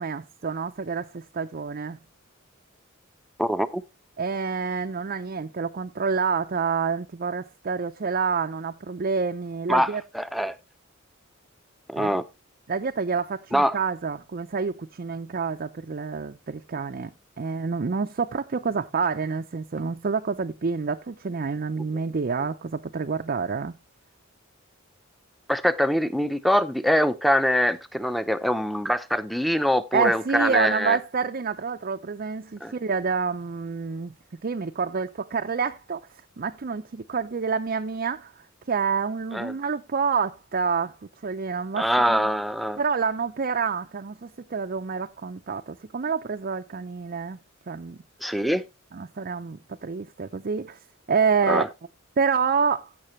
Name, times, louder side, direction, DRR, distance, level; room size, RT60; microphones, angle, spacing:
voice 1, 0.0-2.0 4.2-10.0 12.0-12.1 12.7-17.1 17.4-23.8 29.9-34.2 34.4-36.0 36.4-40.9 41.2-42.3 42.8-47.4 47.7-48.0 48.9-50.8 51.1-51.6 52.2-52.9, right 5 dB, 45° right, 0.5 m, -28 dB
voice 2, 3.4-3.8 9.7-10.5 11.9-12.2 13.5-13.8 25.5-31.0 32.6-32.7 39.3-39.5 41.7-42.8 48.2-48.6 51.5-51.7, equal, ahead, 0.6 m, -23 dB
15.5 x 6.0 x 3.1 m
head